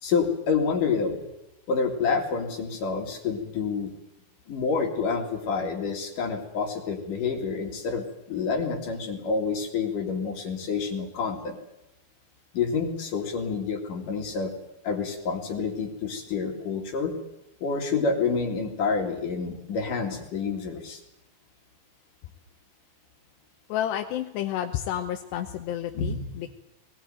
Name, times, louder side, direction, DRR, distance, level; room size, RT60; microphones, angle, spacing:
voice 1, 0.0-1.3 1.7-3.9 4.5-11.6 12.5-14.5 14.8-17.1 17.6-21.0 25.9-26.4, left 5 dB, 50° left, 4 dB, 3.3 m, -28 dB
voice 2, 23.7-26.5, left 11 dB, 75° left, 4 dB, 2.8 m, -30 dB
20.0 x 18.0 x 9.0 m, 0.87 s
omnidirectional pair, 5.6 m